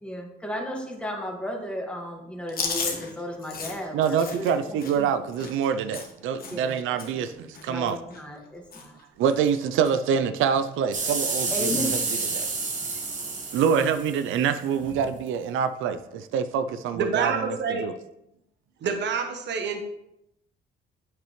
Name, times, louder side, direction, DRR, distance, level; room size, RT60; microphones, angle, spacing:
voice 1, 0.0-5.1 6.5-9.0 11.5-12.0, equal, 5° left, 0 dB, 1.8 m, -35 dB
Chewing mastication, 2.5-6.7 7.0-7.3 7.5-8.5 8.7-9.0 9.3-10.0 10.4-10.5 11.6-12.0, left 4 dB, 50° left, 1.5 m, -35 dB
voice 2, 3.9-8.0 9.2-11.8 12.3-12.5 13.5-17.9, right 7 dB, 90° right, 11 dB, 0.5 m, -26 dB
sound 1, 10.9-14.6 15.3-15.4, right 4 dB, 40° right, 1.6 m, -29 dB
voice 3, 16.9-17.8 18.8-19.8, right 5 dB, 65° right, 5 dB, 1.0 m, -27 dB
8.2 x 6.7 x 3.2 m, 0.82 s
cardioid pair, 90°, 20 cm